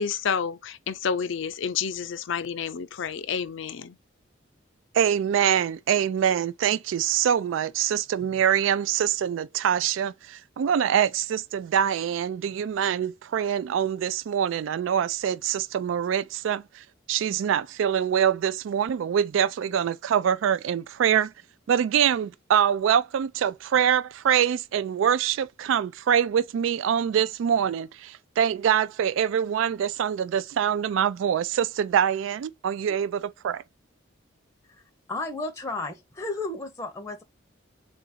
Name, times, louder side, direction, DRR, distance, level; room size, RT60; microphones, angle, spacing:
voice 1, 0.0-4.0, left 6 dB, 70° left, 0.5 m, -29 dB
voice 2, 5.0-10.1 10.6-16.6 17.1-21.3 21.7-33.6, right 9 dB, 75° right, 0.3 m, -24 dB
voice 3, 35.1-37.2, left 2 dB, 15° left, 0.6 m, -33 dB
3.8 x 2.5 x 4.0 m
head